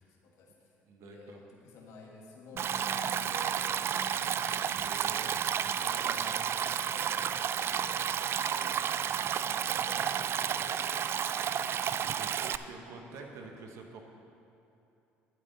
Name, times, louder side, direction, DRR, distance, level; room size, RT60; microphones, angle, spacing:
voice 1, 0.1-12.2 12.6-13.7, left 3 dB, 65° left, -1 dB, 1.8 m, -53 dB
voice 2, 0.9-1.4 4.7-5.7 9.7-10.7 10.9-11.3 12.0-14.0, right 4 dB, 65° right, 3 dB, 1.2 m, -49 dB
Bass guitar, 2.5-8.8, left 5 dB, 50° left, 0.7 m, -54 dB
Stream, 2.6-12.6, right 8 dB, 50° right, 0.3 m, -31 dB
12.5 x 7.8 x 4.2 m, 2.8 s
hypercardioid pair, 70°, 5 cm